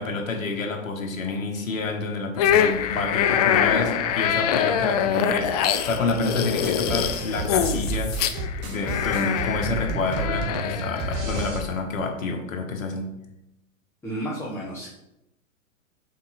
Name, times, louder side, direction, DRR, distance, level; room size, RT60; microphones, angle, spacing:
voice 1, 0.0-5.5 5.8-8.2 8.6-13.1, left 3 dB, 70° left, 2 dB, 1.4 m, -28 dB
sound 1, 2.4-11.5, left 8 dB, 30° left, 0.4 m, -24 dB
sound 2, 6.5-11.6, right 2 dB, 35° right, 1.2 m, -31 dB
voice 2, 14.0-14.9, right 1 dB, 5° left, -6 dB, 1.1 m, -32 dB
5.9 x 4.4 x 4.1 m, 0.89 s
figure-of-eight pair, 105°, 41 cm